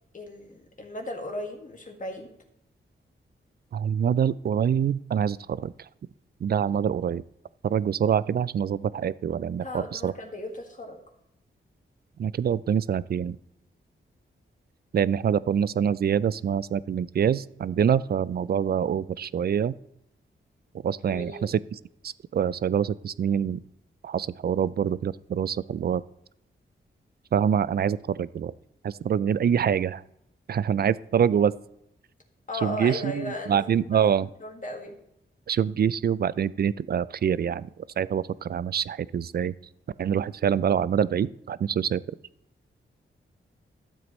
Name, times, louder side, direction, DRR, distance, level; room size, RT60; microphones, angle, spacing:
voice 1, 0.1-2.3 9.6-11.0 21.1-21.6 32.5-34.9, left 1 dB, 40° left, 2 dB, 2.0 m, -36 dB
voice 2, 3.7-5.7 6.4-7.2 7.6-10.1 12.2-13.4 14.9-19.8 20.8-21.6 22.0-23.6 24.0-26.0 27.3-28.5 28.8-30.0 30.5-31.5 32.6-34.3 35.5-37.7 38.0-39.5 40.0-42.0, right 8 dB, 50° right, 19 dB, 0.4 m, -25 dB
12.5 x 7.9 x 3.1 m, 0.79 s
cardioid pair, 65°, 21 cm